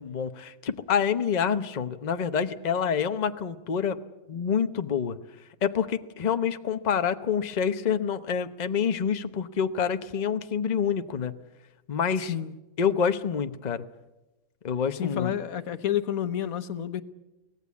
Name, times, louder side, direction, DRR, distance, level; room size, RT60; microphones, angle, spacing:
voice 1, 0.0-4.0 4.3-5.2 5.6-11.3 11.9-12.3 12.8-13.8 14.6-15.3, left 7 dB, 35° left, 10 dB, 0.9 m, -27 dB
voice 2, 12.2-12.6 14.9-17.0, left 10 dB, 85° left, 12 dB, 1.4 m, -30 dB
24.0 x 18.0 x 8.4 m, 1.0 s
omnidirectional pair, 1.4 m